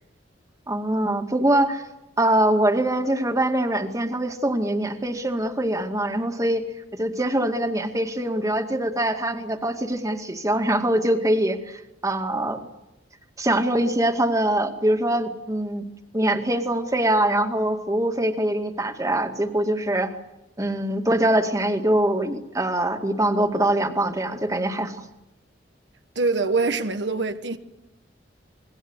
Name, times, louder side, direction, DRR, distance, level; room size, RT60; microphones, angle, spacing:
voice 1, 0.7-1.9 2.2-6.7 6.9-12.6 13.4-15.9 16.1-20.2 20.6-25.1, right 1 dB, 20° right, 2.1 m, -23 dB
voice 2, 26.1-27.6, right 3 dB, 70° right, 1.4 m, -24 dB
28.0 x 21.0 x 8.1 m
head